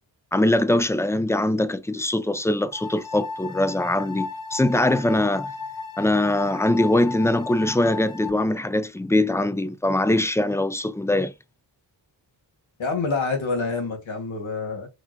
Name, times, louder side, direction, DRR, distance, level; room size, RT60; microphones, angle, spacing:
voice 1, 0.3-5.5 6.0-11.3, left 1 dB, 5° left, 0.4 m, -22 dB
sound 1, 2.7-8.3, left 4 dB, 45° left, 1.1 m, -35 dB
voice 2, 12.8-14.9, left 4 dB, 85° left, 1.8 m, -27 dB
5.8 x 2.8 x 2.2 m
wide cardioid pair, 70°, 45 cm